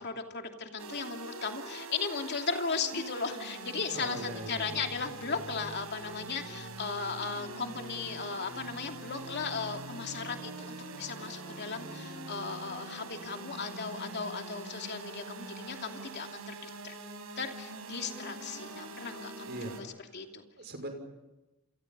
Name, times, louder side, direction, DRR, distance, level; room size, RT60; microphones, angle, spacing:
voice 1, 0.0-17.0 17.4-19.9 20.1-20.4, left 5 dB, 50° left, 4 dB, 2.8 m, -36 dB
sound 1, 0.8-19.8, right 2 dB, 90° right, 4.7 m, -44 dB
voice 2, 3.9-4.9 19.5-19.8 20.0-20.2 20.6-20.9, right 1 dB, 50° right, 5 dB, 5.8 m, -41 dB
29.5 x 28.0 x 5.5 m, 1.0 s
head